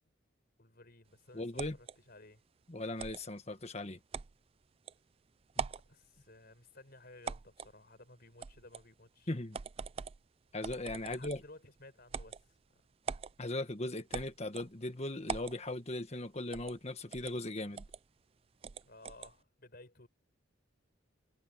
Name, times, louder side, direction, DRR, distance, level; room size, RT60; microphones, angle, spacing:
voice 1, 0.6-2.4 5.7-9.3 11.0-12.8 18.8-20.1, left 2 dB, 50° left, 5.3 m, -57 dB
voice 2, 1.3-1.8 2.7-4.0 5.6-5.7 9.3-9.6 10.5-11.4 13.4-17.8, left 2 dB, 35° left, 1.5 m, -38 dB
sound 1, 1.6-2.0 3.0-3.2 4.1-4.3 4.9-5.0 5.5-5.9 7.2-7.7 8.4-8.9 9.5-10.2 10.6-11.5 12.1-12.4 13.1-13.3 14.1-14.7 15.3-15.6 16.5-16.8 17.1-17.3 17.8-18.0 18.6-19.3, right 6 dB, 30° right, 0.3 m, -41 dB
head